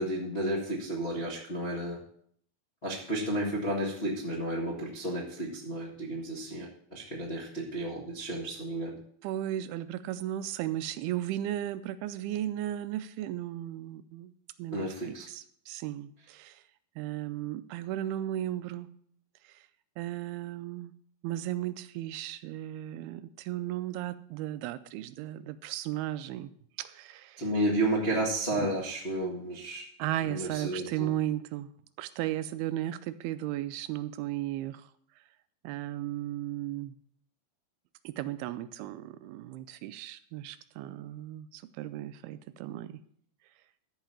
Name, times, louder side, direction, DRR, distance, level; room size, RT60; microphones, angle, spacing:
voice 1, 0.0-2.0 2.8-8.9 14.7-15.3 27.4-29.8 30.2-31.1, right 1 dB, 45° left, -4 dB, 0.8 m, -32 dB
voice 2, 9.2-14.3 14.6-16.6 17.0-18.9 19.4-19.6 20.0-20.9 21.2-26.5 26.8-27.4 28.5-28.7 30.0-31.7 32.0-34.9 35.6-37.0 38.0-43.0, right 13 dB, 85° right, 13 dB, 2.5 m, -35 dB
13.5 x 4.7 x 7.4 m, 0.64 s
omnidirectional pair, 4.5 m